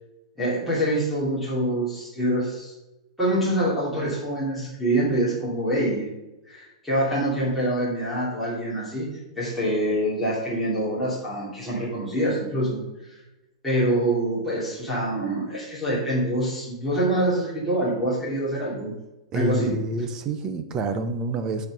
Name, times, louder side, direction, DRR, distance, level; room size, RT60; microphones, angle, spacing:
voice 1, 0.4-2.7 3.2-6.1 6.5-9.1 9.4-12.8 13.1-13.2 13.6-18.9 19.3-19.7, right 1 dB, ahead, -10 dB, 2.7 m, -25 dB
voice 2, 19.3-21.7, right 2 dB, 15° right, 8 dB, 0.6 m, -28 dB
8.9 x 4.3 x 6.7 m, 0.98 s
supercardioid pair, 180°, 4 cm